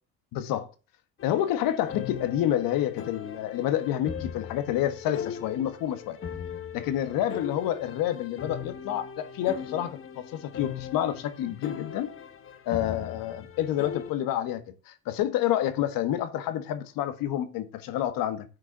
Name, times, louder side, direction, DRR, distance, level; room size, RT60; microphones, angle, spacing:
voice 1, 0.3-0.7 1.2-6.2 6.7-12.1 12.6-18.4, left 11 dB, 75° left, 1.6 m, -29 dB
sound 1, 1.2-14.1, left 8 dB, 40° left, 1.3 m, -39 dB
9.4 x 5.1 x 8.0 m
supercardioid pair, 95°, 35 cm